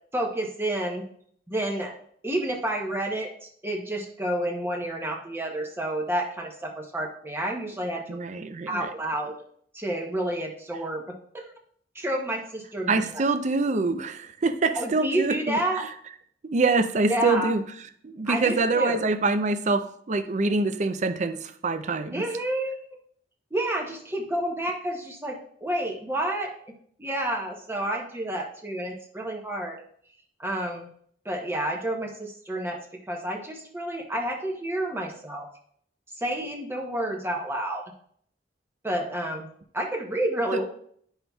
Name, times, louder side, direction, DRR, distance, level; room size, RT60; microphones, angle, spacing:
voice 1, 0.1-1.0 1.5-1.9 2.2-8.2 8.7-9.3 9.7-11.5 11.9-13.2 14.7-15.8 17.1-17.5 18.3-19.0 22.1-22.8 23.5-26.5 27.0-29.8 30.4-30.9 31.2-32.8 33.1-35.5 36.2-37.8 38.8-39.5 39.7-40.6, right 1 dB, 15° right, 0 dB, 0.8 m, -30 dB
voice 2, 8.1-8.9 12.9-15.9 16.4-17.6 18.0-22.3 40.5-40.6, right 3 dB, 40° right, 10 dB, 0.5 m, -25 dB
10.0 x 5.6 x 2.3 m, 0.62 s
head